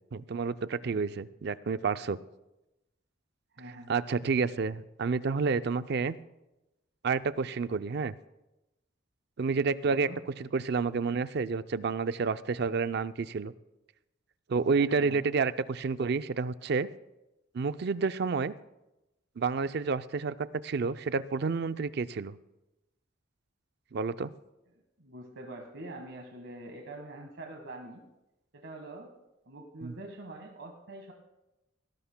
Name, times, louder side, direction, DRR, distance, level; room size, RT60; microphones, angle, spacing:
voice 1, 0.1-2.2 3.9-6.2 7.0-8.1 9.4-10.1 10.4-13.5 14.5-16.9 17.5-18.5 19.4-22.4 23.9-24.3 29.8-29.9, right 4 dB, 60° right, 13 dB, 0.5 m, -29 dB
voice 2, 3.5-3.9 9.8-10.2 14.9-15.2 25.0-28.0 28.5-29.1 29.4-31.1, right 2 dB, 80° right, 2 dB, 1.5 m, -45 dB
18.0 x 17.0 x 2.2 m, 0.97 s
head